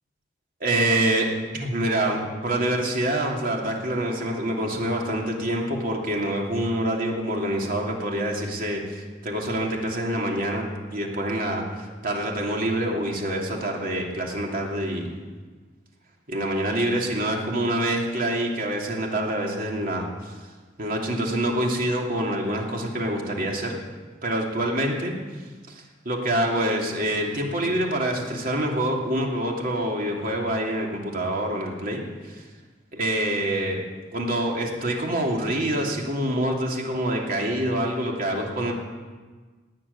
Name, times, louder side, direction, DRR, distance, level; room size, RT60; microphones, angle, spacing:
voice 1, 0.6-1.3 1.5-10.6 10.9-15.1 16.3-20.3 20.8-23.8 24.2-25.1 25.7-32.4 32.9-33.8 34.1-38.7, right 1 dB, 50° right, 0 dB, 2.8 m, -26 dB
18.5 x 7.6 x 9.6 m, 1.4 s
head